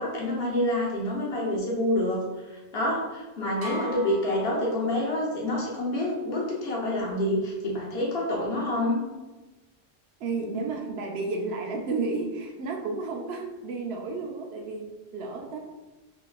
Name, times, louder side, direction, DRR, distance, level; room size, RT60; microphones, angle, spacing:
voice 1, 0.0-9.0, left 1 dB, 75° left, -3 dB, 1.1 m, -27 dB
sound 1, 3.6-5.4, equal, 45° right, 0.6 m, -39 dB
voice 2, 10.2-15.6, right 3 dB, 80° right, 2 dB, 0.8 m, -32 dB
3.4 x 3.4 x 2.3 m, 1.1 s
omnidirectional pair, 1.1 m